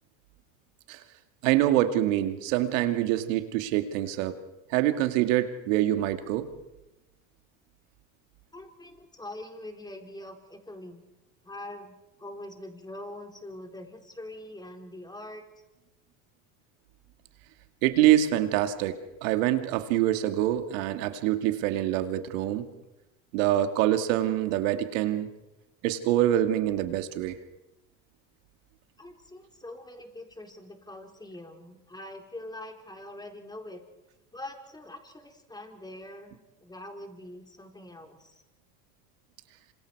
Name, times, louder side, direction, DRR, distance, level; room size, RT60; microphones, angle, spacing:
voice 1, 1.4-4.4 4.7-6.5 17.8-22.7 23.3-25.3 25.8-27.4, right 13 dB, 80° right, 8 dB, 2.2 m, -25 dB
voice 2, 8.5-11.0 11.4-15.4 29.0-33.8 34.3-38.4, left 1 dB, 10° left, 3 dB, 4.1 m, -43 dB
27.5 x 26.0 x 4.7 m, 0.95 s
supercardioid pair, 90°, 39 cm